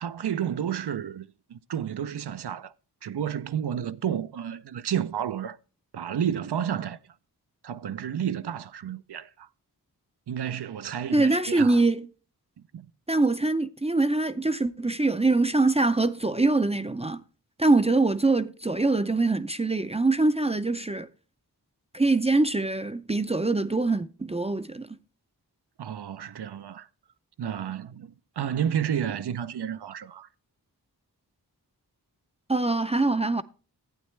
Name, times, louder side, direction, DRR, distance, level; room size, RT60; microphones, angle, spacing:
voice 1, 0.0-2.7 3.0-5.6 5.9-7.0 7.6-9.5 10.3-11.8 12.7-12.9 25.8-26.9 27.4-30.3, right 9 dB, 80° right, 0.6 m, -31 dB
voice 2, 11.1-12.1 13.1-17.2 17.6-21.1 21.9-24.9 32.5-33.4, right 2 dB, 15° right, 0.4 m, -23 dB
12.0 x 8.8 x 3.2 m
wide cardioid pair, 65°, 40 cm